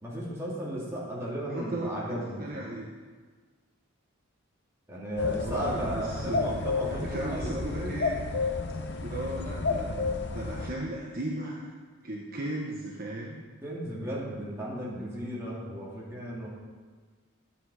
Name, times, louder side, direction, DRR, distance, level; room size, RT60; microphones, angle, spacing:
voice 1, 0.0-2.8 4.9-7.9 13.6-16.5, right 1 dB, 15° right, -6 dB, 2.7 m, -35 dB
voice 2, 1.5-2.9 5.2-8.5 9.0-11.7 12.0-13.4, right 1 dB, 40° right, -3 dB, 1.1 m, -36 dB
sound 1, 5.2-10.7, left 4 dB, 55° left, 0.7 m, -31 dB
12.5 x 7.8 x 4.9 m, 1.5 s
head